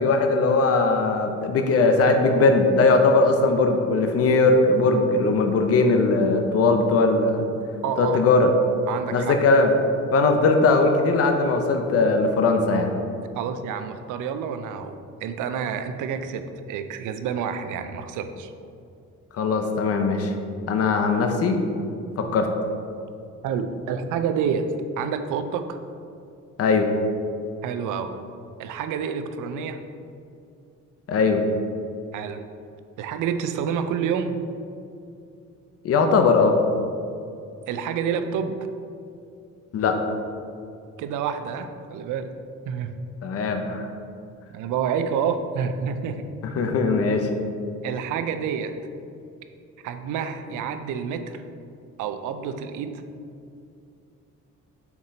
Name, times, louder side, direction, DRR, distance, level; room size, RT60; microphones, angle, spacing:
voice 1, 0.0-7.5 8.0-8.5 9.1-9.8 10.1-12.9 19.3-20.3 20.7-21.6 22.2-22.5 26.6-26.9 31.1-31.4 35.8-36.5 39.7-39.9 43.2-43.9 46.5-47.3, left 3 dB, 50° left, 5 dB, 0.6 m, -20 dB
voice 2, 7.8-8.2 8.9-9.4 13.4-18.5 23.4-25.8 27.6-28.2 28.6-29.8 32.1-32.4 33.0-34.4 37.7-38.6 41.0-42.3 42.7-42.9 44.5-46.3 47.8-48.7 49.8-51.4 52.0-53.0, right 7 dB, 85° right, 8 dB, 0.5 m, -28 dB
5.9 x 3.8 x 4.2 m, 2.5 s
cardioid pair, 90°, 30 cm